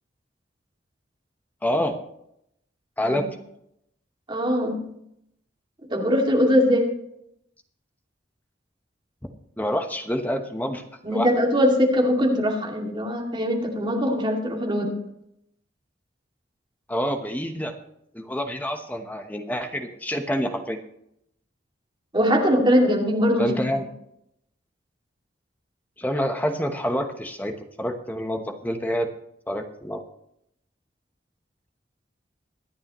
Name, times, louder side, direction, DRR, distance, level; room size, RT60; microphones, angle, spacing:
voice 1, 1.6-2.0 3.0-3.3 9.6-10.8 11.1-11.3 16.9-17.7 18.1-20.8 23.4-23.8 26.0-29.1 29.5-30.0, equal, 10° left, 5 dB, 1.1 m, -27 dB
voice 2, 4.3-4.9 5.9-6.9 11.0-14.9 22.1-23.8, equal, 25° right, 0 dB, 2.4 m, -21 dB
23.5 x 8.6 x 3.1 m, 0.76 s
head